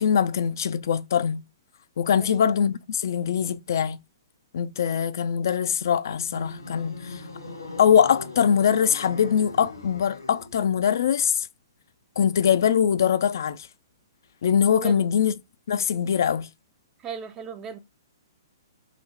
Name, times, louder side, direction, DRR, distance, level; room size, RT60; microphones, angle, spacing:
voice 1, 0.0-1.4 2.0-4.0 4.5-7.2 7.8-11.5 12.2-13.7 14.4-15.3 15.7-16.5, left 8 dB, 60° left, 0.3 m, -22 dB
sound 1, 6.0-10.7, left 3 dB, 90° left, 0.8 m, -40 dB
voice 2, 17.0-17.8, right 8 dB, 25° right, 0.4 m, -36 dB
3.7 x 2.1 x 3.1 m
figure-of-eight pair, 120°, 2 cm